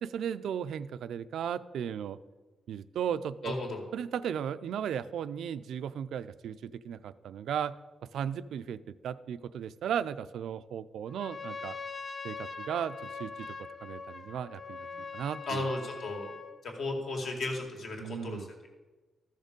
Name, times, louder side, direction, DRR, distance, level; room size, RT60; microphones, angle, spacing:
voice 1, 0.0-2.2 2.7-3.6 3.9-7.8 8.1-11.8 12.2-13.5 13.8-14.8 15.1-15.7 18.0-18.5, right 8 dB, 90° right, 14 dB, 0.4 m, -35 dB
voice 2, 3.4-3.8 14.8-15.1 15.5-16.3 16.6-18.7, left 2 dB, 60° left, 2 dB, 2.1 m, -35 dB
Trumpet, 11.1-16.6, left 4 dB, 30° left, 0.8 m, -42 dB
14.0 x 6.5 x 5.2 m, 1.3 s
wide cardioid pair, 160°, 0 cm